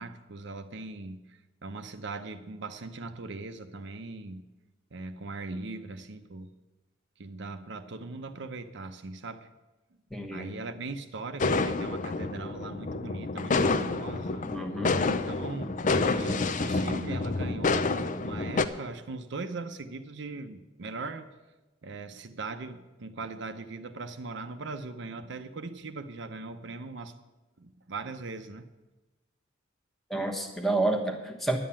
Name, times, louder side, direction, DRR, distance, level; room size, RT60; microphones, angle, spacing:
voice 1, 0.0-4.4 4.9-6.5 7.2-9.5 10.3-14.5 15.3-21.4 21.8-27.1 27.6-28.7, right 3 dB, 65° right, 8 dB, 0.7 m, -40 dB
voice 2, 10.1-10.5 14.5-15.0 30.1-31.6, right 2 dB, ahead, 2 dB, 1.2 m, -29 dB
sound 1, 11.4-18.6, left 3 dB, 40° left, 0.6 m, -28 dB
11.0 x 7.5 x 8.7 m, 1.1 s
head